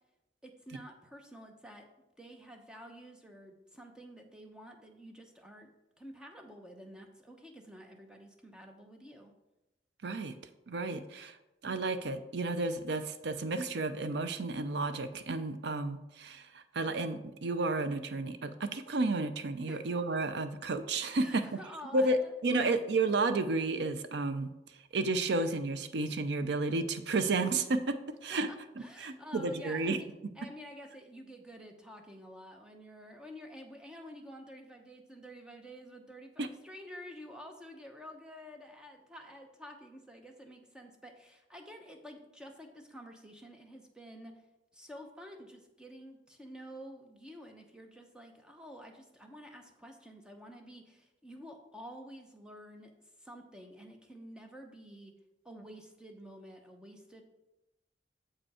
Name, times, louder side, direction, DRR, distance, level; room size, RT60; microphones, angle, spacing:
voice 1, 0.4-1.9 2.2-5.7 6.0-9.3 19.7-19.8 21.1-22.3 22.6-22.7 28.3-44.4 44.7-52.9 53.2-55.1 55.4-57.2, equal, 5° right, 3 dB, 0.8 m, -50 dB
voice 2, 10.0-10.3 10.7-11.4 11.6-21.4 21.9-24.5 24.9-28.5 28.8-30.0 36.4-36.5, right 3 dB, 65° right, 10 dB, 0.5 m, -32 dB
7.4 x 5.1 x 4.8 m, 0.97 s
head